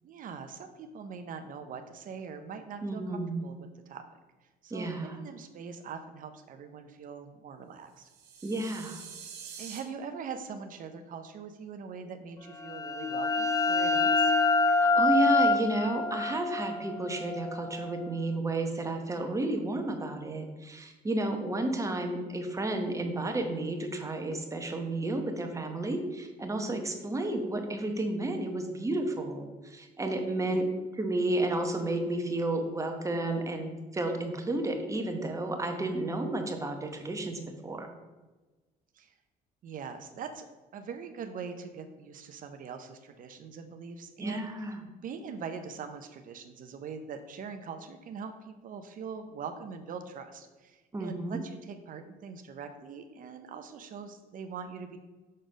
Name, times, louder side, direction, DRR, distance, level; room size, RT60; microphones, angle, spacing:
voice 1, 0.0-3.6 3.9-4.0 4.6-8.1 9.6-14.3 30.5-30.7 38.9-39.1 39.6-40.5 40.7-44.5 45.0-55.0, right 6 dB, 55° right, 8 dB, 0.6 m, -42 dB
voice 2, 2.8-3.5 4.7-5.2 8.4-9.0 14.7-30.7 30.9-37.9 44.2-44.8 50.9-51.4, right 2 dB, 20° right, 4 dB, 1.0 m, -32 dB
sound 1, 8.0-9.8, right 7 dB, 80° right, 1.3 m, -45 dB
sound 2, 12.6-18.0, left 3 dB, 20° left, 0.5 m, -26 dB
6.4 x 4.0 x 5.1 m, 1.2 s
cardioid pair, 110°, 17 cm